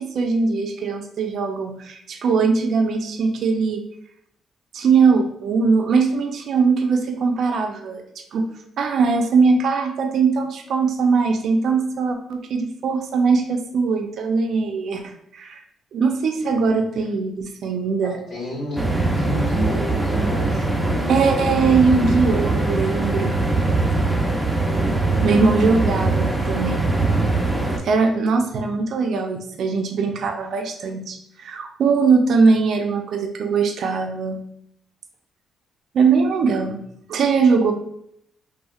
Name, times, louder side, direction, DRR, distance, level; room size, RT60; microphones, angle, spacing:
voice 1, 0.0-3.8 4.7-8.5 8.8-15.6 15.9-18.2 21.1-23.4 25.2-26.9 27.8-34.4 35.9-36.8 37.1-37.7, right 4 dB, 65° right, 4 dB, 0.3 m, -20 dB
voice 2, 18.0-18.9 19.1-21.2, left 1 dB, 85° left, -6 dB, 1.1 m, -31 dB
sound 1, 18.8-27.8, right 2 dB, ahead, 0.5 m, -22 dB
2.8 x 2.4 x 2.3 m, 0.71 s
cardioid pair, 90°, 0 cm